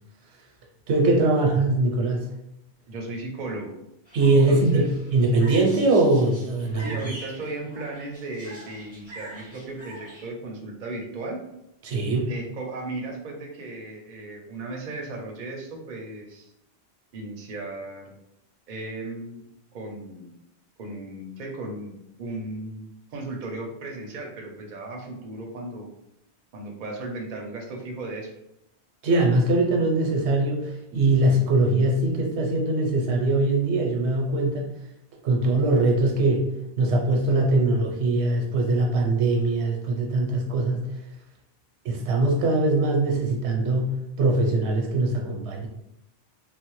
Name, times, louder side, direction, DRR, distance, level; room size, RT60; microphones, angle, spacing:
voice 1, 0.9-2.3 4.1-7.0 11.8-12.3 29.0-34.7 35.2-36.5 36.8-40.9 41.8-45.7, right 2 dB, 85° right, 0 dB, 0.9 m, -22 dB
voice 2, 2.9-3.8 4.5-5.0 6.8-11.4 12.3-16.5 17.1-18.1 18.7-19.4 19.7-20.3 20.8-25.9 26.5-28.3, right 2 dB, 50° right, 1 dB, 0.6 m, -36 dB
sound 1, 4.0-10.3, right 1 dB, 15° left, 1.0 m, -44 dB
3.2 x 2.0 x 3.0 m, 0.82 s
omnidirectional pair, 1.1 m